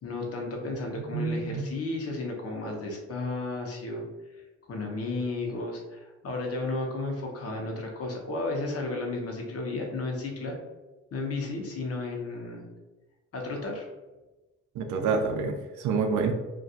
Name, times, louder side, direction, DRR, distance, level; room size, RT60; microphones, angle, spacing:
voice 1, 0.0-4.0 4.7-10.6 11.1-12.6 13.3-13.9, left 2 dB, 50° left, 0 dB, 0.8 m, -33 dB
voice 2, 1.1-1.7 14.8-16.3, right 5 dB, 80° right, 5 dB, 0.5 m, -27 dB
2.4 x 2.3 x 2.7 m, 1.1 s
cardioid pair, 90°, 30 cm